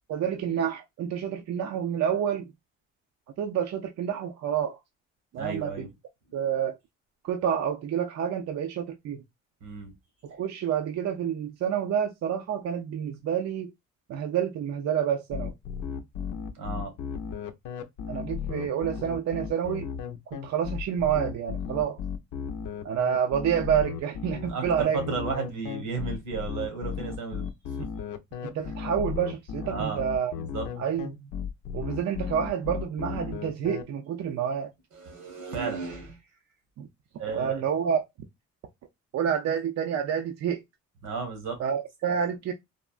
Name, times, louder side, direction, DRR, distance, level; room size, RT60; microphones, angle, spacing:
voice 1, 0.1-2.5 3.4-4.8 5.3-5.9 6.3-6.8 7.2-9.2 10.2-13.7 14.1-15.5 18.1-19.9 20.4-22.0 22.8-25.0 28.4-30.3 30.8-31.3 31.7-34.7 36.8-36.9 37.3-38.0 39.1-40.6 41.6-42.5, right 8 dB, 60° right, 0.5 m, -28 dB
voice 2, 5.4-5.9 9.6-9.9 16.5-16.9 24.5-27.5 27.8-27.9 29.6-30.0 30.3-30.7 34.9-36.2 37.1-37.6 41.0-41.6, right 4 dB, 85° right, 1.3 m, -34 dB
sound 1, 15.3-33.8, left 7 dB, 80° left, 0.5 m, -35 dB
3.5 x 2.0 x 2.3 m
cardioid pair, 90°, 30 cm